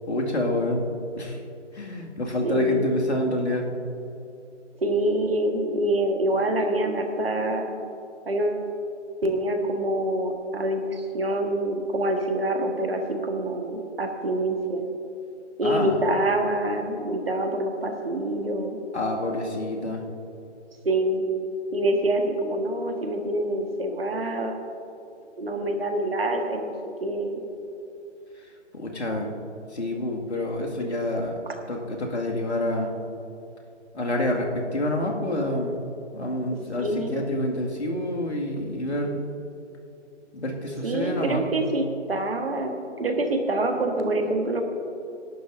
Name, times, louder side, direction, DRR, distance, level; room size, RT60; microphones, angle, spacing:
voice 1, 0.1-0.8 1.1-1.4 1.7-3.7 15.6-16.0 18.9-20.0 28.7-29.4 29.7-31.4 31.7-33.0 33.9-39.3 40.3-41.6, left 1 dB, 65° left, 0 dB, 2.3 m, -28 dB
voice 2, 2.4-2.9 4.8-7.7 8.3-8.7 9.2-14.8 15.6-18.8 20.9-21.2 21.7-24.6 25.4-26.7 27.0-27.4 31.5-31.6 36.8-37.1 40.8-42.7 43.0-44.6, right 1 dB, 55° right, 4 dB, 1.7 m, -26 dB
25.0 x 11.5 x 2.7 m, 2.7 s
figure-of-eight pair, 140°, 36 cm